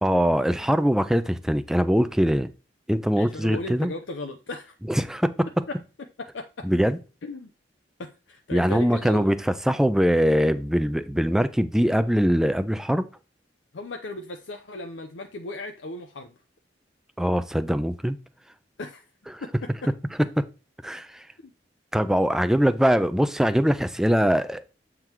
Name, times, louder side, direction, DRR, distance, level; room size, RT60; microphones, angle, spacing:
voice 1, 0.0-2.5 2.9-3.9 4.9-5.3 6.6-7.0 8.5-13.1 17.2-18.2 20.8-21.2 21.9-24.6, equal, 5° right, 0.4 m, -22 dB
voice 2, 3.1-4.7 5.7-5.8 6.3-6.7 7.2-7.5 8.0-9.3 13.7-16.3 18.8-19.0 19.4-19.9 21.4-21.5, left 2 dB, 75° left, 0.7 m, -36 dB
7.9 x 3.8 x 4.5 m
head